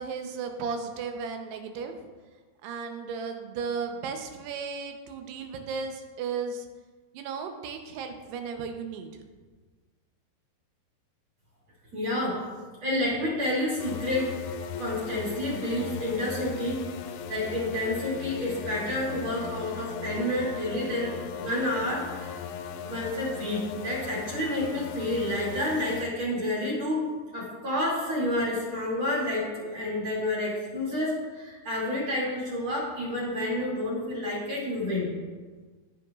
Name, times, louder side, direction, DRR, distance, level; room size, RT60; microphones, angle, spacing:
voice 1, 0.0-2.0 2.6-6.7 7.1-9.1, right 5 dB, 85° right, 5 dB, 2.9 m, -35 dB
voice 2, 11.9-12.4 12.8-14.4 14.8-16.8 17.3-22.4 22.8-27.0 27.3-35.1, left 1 dB, 35° right, -5 dB, 2.8 m, -29 dB
sound 1, 13.8-26.1, left 7 dB, 90° left, 2.7 m, -38 dB
15.0 x 7.0 x 2.4 m, 1.4 s
omnidirectional pair, 4.6 m